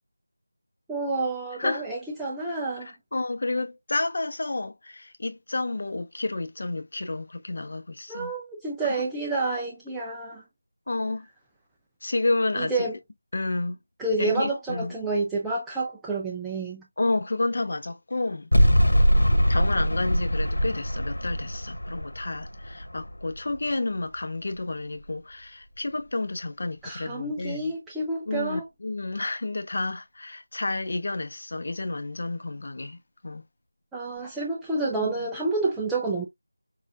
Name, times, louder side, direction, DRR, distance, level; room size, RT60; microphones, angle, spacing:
voice 1, 0.9-2.9 8.1-10.4 12.6-13.0 14.0-16.8 26.8-28.7 33.9-36.2, right 3 dB, 5° right, 0.4 m, -29 dB
voice 2, 3.1-8.3 10.9-11.3 12.0-12.9 13.3-13.8 14.2-14.9 17.0-18.5 19.5-27.7 28.3-33.4 34.9-35.3, left 2 dB, 45° left, 0.8 m, -30 dB
sound 1, 18.5-23.7, equal, 80° left, 1.5 m, -23 dB
6.4 x 2.5 x 2.3 m
figure-of-eight pair, 170°, 0 cm